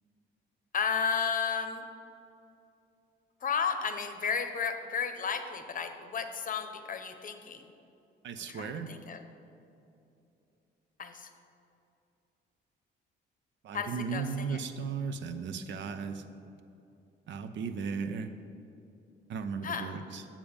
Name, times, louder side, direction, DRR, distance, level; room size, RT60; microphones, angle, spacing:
voice 1, 0.7-1.8 3.4-7.6 8.5-9.2 11.0-11.3 13.7-14.6 19.6-19.9, left 6 dB, 45° left, 7 dB, 0.7 m, -33 dB
voice 2, 8.2-8.9 13.6-16.3 17.3-18.3 19.3-20.3, right 5 dB, 70° right, 9 dB, 0.6 m, -36 dB
7.2 x 7.0 x 5.1 m, 2.7 s
cardioid pair, 90°, 20 cm